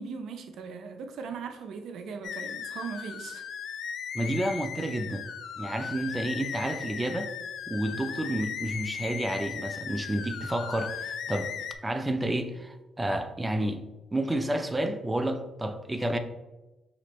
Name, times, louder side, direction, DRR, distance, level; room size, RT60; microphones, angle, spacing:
voice 1, 0.0-3.5 4.2-4.4, right 5 dB, 75° right, 0.5 m, -39 dB
sound 1, 2.2-11.7, left 7 dB, 70° left, 0.3 m, -37 dB
voice 2, 4.1-5.3 5.6-7.3 7.7-11.5 11.8-13.8 14.1-16.2, right 1 dB, 15° right, 0.4 m, -30 dB
5.0 x 3.0 x 3.0 m
cardioid pair, 90°, 0 cm